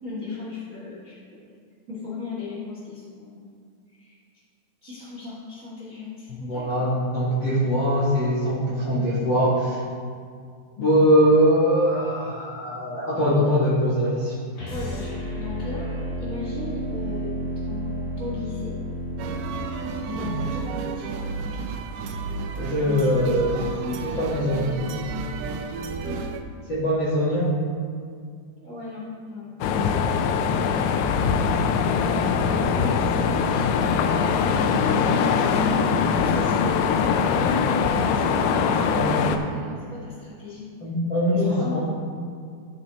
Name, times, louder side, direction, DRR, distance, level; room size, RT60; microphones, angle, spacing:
voice 1, 0.0-1.4 1.9-3.4 3.9-4.1 4.8-6.9 14.7-15.9 16.2-18.8 20.0-21.3 21.5-21.7 22.8-23.2 23.5-24.2 26.0-26.2 28.6-30.8 32.7-40.7 41.3-41.8, left 3 dB, 40° right, -7 dB, 1.1 m, -37 dB
voice 2, 6.3-9.8 10.8-14.4 20.2-20.3 22.5-23.6 24.0-24.8 26.7-27.6 38.9-39.2 40.8-41.8, equal, 55° left, -9 dB, 1.3 m, -22 dB
sound 1, 14.5-20.7, equal, 70° left, 4.3 m, -32 dB
sound 2, 19.2-26.4, right 4 dB, 80° right, 2.0 m, -32 dB
sound 3, 29.6-39.4, left 6 dB, 90° left, 2.5 m, -22 dB
13.5 x 5.5 x 4.0 m, 2.2 s
omnidirectional pair, 4.3 m